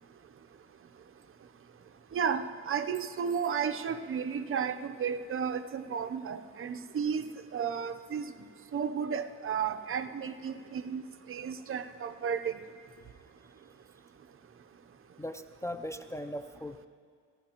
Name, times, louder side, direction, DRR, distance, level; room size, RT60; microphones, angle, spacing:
voice 1, 2.1-7.2 7.5-8.2 8.7-11.0 11.3-12.6, right 7 dB, 45° right, 8 dB, 0.7 m, -33 dB
voice 2, 15.2-16.9, equal, 10° left, 6 dB, 0.4 m, -39 dB
24.0 x 16.0 x 3.0 m, 2.1 s
cardioid pair, 90°, 30 cm